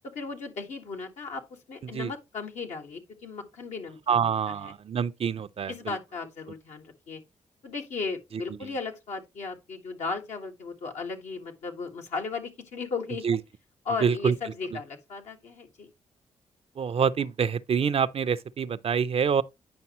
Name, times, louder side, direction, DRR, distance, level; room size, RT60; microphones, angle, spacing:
voice 1, 0.1-1.4 1.7-4.7 5.7-7.2 7.6-13.2 13.8-15.9, left 4 dB, 75° left, 1.6 m, -36 dB
voice 2, 4.1-6.0 8.3-8.7 13.2-13.4 14.0-14.3 14.7-14.8 16.8-19.4, right 7 dB, 55° right, 0.5 m, -26 dB
9.6 x 5.3 x 3.0 m
supercardioid pair, 50°, 12 cm